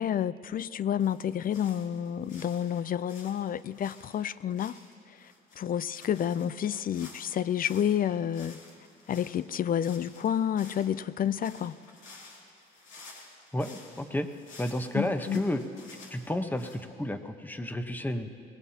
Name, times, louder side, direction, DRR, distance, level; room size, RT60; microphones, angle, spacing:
voice 1, 0.0-4.8 5.1-8.6 9.1-11.8 14.9-15.4, left 9 dB, 45° left, 0.4 m, -30 dB
sound 1, 1.0-8.0 8.3-16.8, left 3 dB, 80° left, 2.5 m, -52 dB
voice 2, 13.5-14.3 14.6-15.6 16.1-18.3, left 1 dB, 10° left, 1.0 m, -31 dB
23.0 x 19.0 x 2.8 m
cardioid pair, 90°, 20 cm